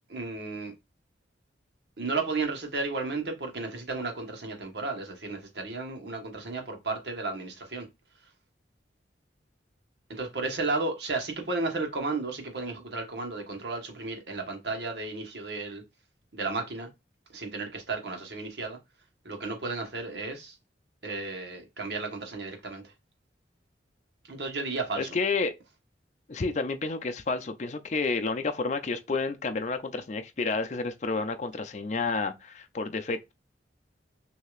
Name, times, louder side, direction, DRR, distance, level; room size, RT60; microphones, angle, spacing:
voice 1, 0.1-0.7 2.0-7.9 10.1-15.8 16.3-16.9 17.3-18.8 19.2-20.6 21.0-22.9 24.2-25.2, right 3 dB, 70° right, 1.3 m, -33 dB
voice 2, 25.0-25.5 26.3-33.3, left 4 dB, 40° left, 0.5 m, -30 dB
6.3 x 2.8 x 2.4 m
head